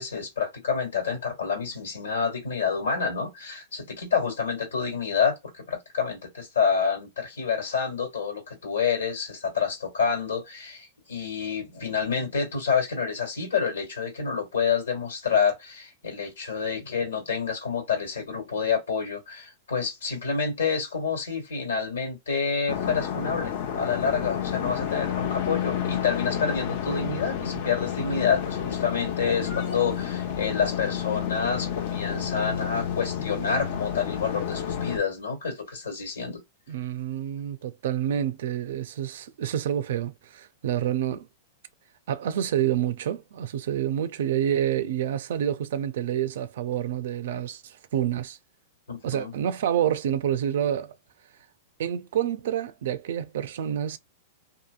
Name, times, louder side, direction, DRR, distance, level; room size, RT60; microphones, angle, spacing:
voice 1, 0.0-5.4 5.7-36.4 48.9-49.3, left 6 dB, 85° left, 1.8 m, -28 dB
sound 1, 22.7-35.0, left 8 dB, 60° left, 0.8 m, -30 dB
voice 2, 36.7-41.3 42.1-48.4 49.0-51.0 51.8-54.0, right 10 dB, 70° right, 0.4 m, -28 dB
2.8 x 2.5 x 2.3 m
hypercardioid pair, 115°, 0 cm